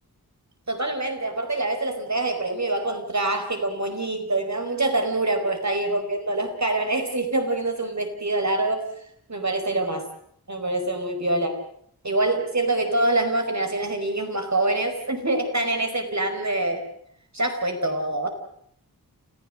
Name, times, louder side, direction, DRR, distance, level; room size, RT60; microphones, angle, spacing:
voice 1, 0.7-8.8 9.3-10.0 10.5-11.5 12.0-16.8 17.3-18.3, right 2 dB, 45° right, 5 dB, 4.9 m, -25 dB
28.5 x 15.5 x 7.8 m, 0.68 s
wide cardioid pair, 60°, 38 cm